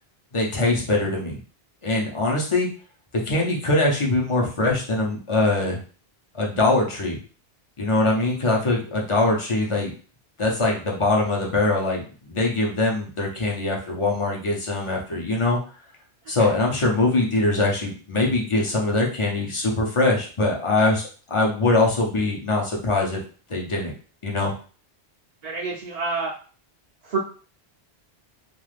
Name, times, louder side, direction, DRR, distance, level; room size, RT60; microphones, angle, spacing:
voice 1, 0.3-1.4 1.8-2.7 3.2-5.8 6.3-7.2 7.8-9.9 10.4-15.6 16.3-23.2 23.5-23.9 24.2-24.5, left 2 dB, 35° left, -1 dB, 0.7 m, -22 dB
voice 2, 25.4-26.3 27.0-27.2, right 4 dB, 55° right, -3 dB, 0.5 m, -27 dB
2.4 x 2.4 x 3.3 m, 0.38 s
omnidirectional pair, 1.1 m